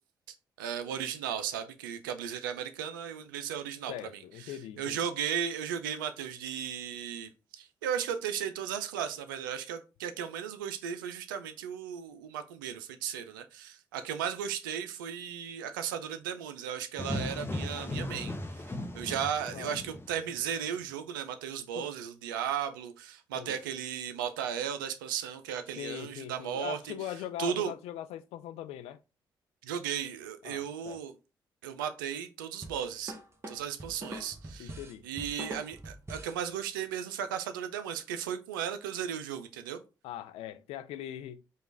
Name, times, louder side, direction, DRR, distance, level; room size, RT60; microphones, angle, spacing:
voice 1, 0.6-3.9 4.5-7.3 7.6-18.3 18.9-26.9 27.4-27.7 29.6-31.1 31.6-33.1 33.5-34.8 35.0-39.8, right 8 dB, 90° right, 0.4 m, -35 dB
voice 2, 3.9-5.0 19.5-19.8 21.8-21.9 23.3-23.6 25.8-29.0 30.4-31.0 34.6-35.0 40.0-41.4, left 12 dB, 75° left, 0.4 m, -41 dB
sound 1, 17.0-20.5, left 1 dB, 20° left, 0.7 m, -37 dB
sound 2, 32.6-36.4, right 1 dB, 25° right, 1.1 m, -43 dB
4.9 x 2.3 x 3.2 m
hypercardioid pair, 40°, 11 cm